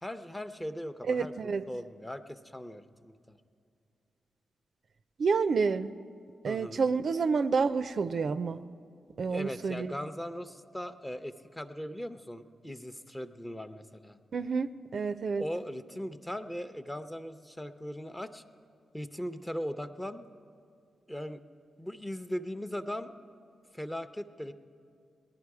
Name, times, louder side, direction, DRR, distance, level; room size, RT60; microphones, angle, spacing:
voice 1, 0.0-1.3 1.7-3.4 6.5-6.8 9.3-14.2 15.4-18.4 18.9-20.3 21.1-21.4 21.8-23.1 23.7-24.5, equal, 10° left, 10 dB, 0.6 m, -39 dB
voice 2, 1.1-1.6 5.2-5.9 6.4-8.6 9.2-9.9 14.3-15.4, right 5 dB, 60° right, 11 dB, 0.4 m, -29 dB
18.5 x 11.0 x 4.8 m, 2.4 s
cardioid pair, 70°, 0 cm